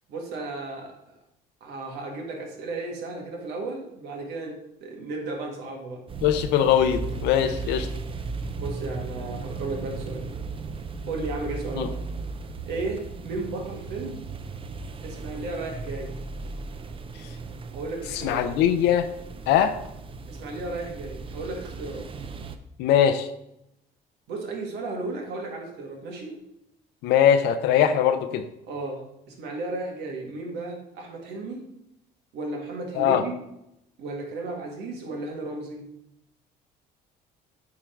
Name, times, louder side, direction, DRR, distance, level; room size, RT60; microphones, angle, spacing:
voice 1, 0.1-1.2 1.6-6.0 7.4-7.8 8.6-10.3 11.1-11.9 12.6-14.2 15.0-16.1 17.7-18.4 20.3-22.1 24.3-26.4 28.7-31.6 32.3-33.5 34.0-35.9, right 2 dB, 85° right, 1 dB, 1.9 m, -34 dB
sound 1, 6.1-22.6, right 3 dB, 30° right, 0.6 m, -36 dB
voice 2, 6.2-7.9 11.8-11.9 18.2-19.1 19.5-19.7 22.8-23.3 27.0-28.4 33.0-33.2, left 9 dB, 90° left, 8 dB, 0.6 m, -21 dB
8.5 x 3.8 x 4.5 m, 0.81 s
cardioid pair, 110°, 17 cm